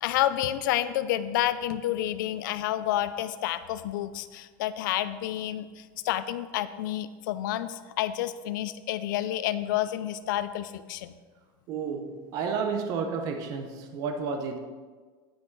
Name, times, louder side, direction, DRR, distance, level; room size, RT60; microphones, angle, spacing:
voice 1, 0.0-11.1, left 13 dB, 65° left, 0.5 m, -29 dB
voice 2, 11.7-14.6, right 5 dB, 35° right, 0.8 m, -31 dB
9.8 x 6.2 x 4.6 m
supercardioid pair, 180°, 11 cm